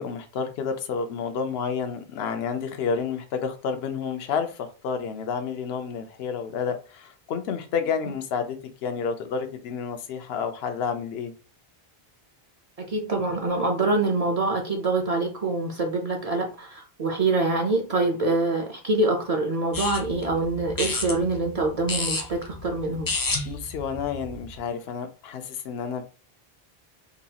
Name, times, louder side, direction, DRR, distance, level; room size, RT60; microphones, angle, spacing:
voice 1, 0.0-11.3 23.5-26.0, left 6 dB, 80° left, 7 dB, 0.8 m, -30 dB
voice 2, 12.8-23.1, right 2 dB, 45° right, 2 dB, 0.6 m, -25 dB
sound 1, 19.7-24.6, left 3 dB, 30° left, 0.4 m, -32 dB
3.9 x 2.3 x 2.8 m, 0.34 s
omnidirectional pair, 1.0 m